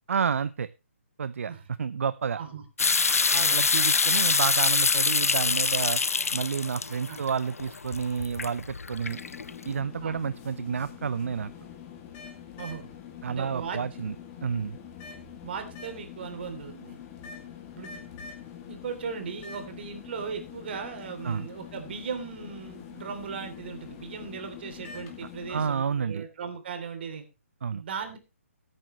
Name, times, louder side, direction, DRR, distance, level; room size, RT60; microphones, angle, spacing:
voice 1, 0.1-0.7 1.2-1.5 1.8-2.4 3.5-6.0 6.3-9.2 9.6-11.5 13.2-14.1 14.4-14.8 21.2-21.5 25.5-26.3 27.6-27.8, right 6 dB, 65° right, 15 dB, 0.6 m, -30 dB
sound 1, 2.8-9.6, left 4 dB, 85° left, 0.6 m, -25 dB
voice 2, 3.3-3.7 7.1-7.2 10.0-10.2 12.6-12.9 13.3-13.8 15.4-17.0 17.7-18.0 18.7-27.2 27.7-28.2, right 6 dB, 45° right, 6 dB, 3.2 m, -37 dB
sound 2, 9.0-25.7, left 8 dB, 25° left, 2.3 m, -44 dB
18.0 x 8.9 x 3.1 m, 0.28 s
hypercardioid pair, 145°, 8 cm